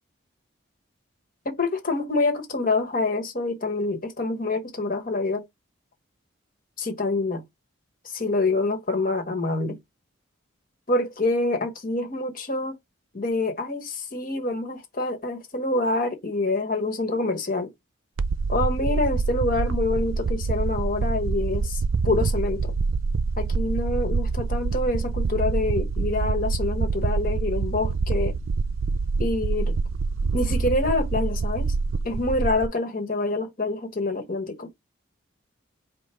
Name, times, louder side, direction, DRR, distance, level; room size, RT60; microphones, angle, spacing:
voice 1, 1.4-5.4 6.8-7.4 8.0-9.8 10.9-12.7 13.1-17.7 18.5-22.7 23.4-28.3 29.2-29.7 30.3-31.7 32.0-34.7, left 2 dB, 45° left, 1.1 m, -26 dB
sound 1, 18.2-32.7, right 4 dB, 85° right, 0.5 m, -26 dB
5.0 x 2.1 x 4.3 m
head